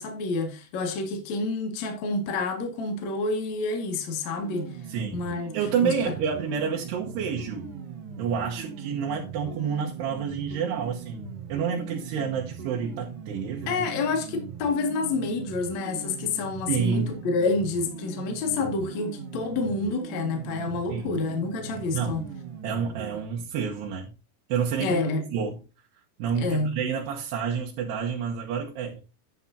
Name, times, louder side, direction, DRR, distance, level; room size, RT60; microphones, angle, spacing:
voice 1, 0.0-4.7 5.1-6.1 13.7-22.2 24.8-25.2 26.4-26.8, left 3 dB, 50° left, 2.8 m, -28 dB
sound 1, 4.4-23.2, right 6 dB, 55° right, 1.7 m, -40 dB
voice 2, 4.9-5.3 5.5-7.7 8.2-13.9 16.7-17.2 20.9-21.2 21.9-22.3 22.6-24.1 24.5-25.0 25.3-25.6 26.2-29.0, right 7 dB, 85° right, 3.3 m, -29 dB
11.5 x 8.8 x 2.8 m
omnidirectional pair, 4.7 m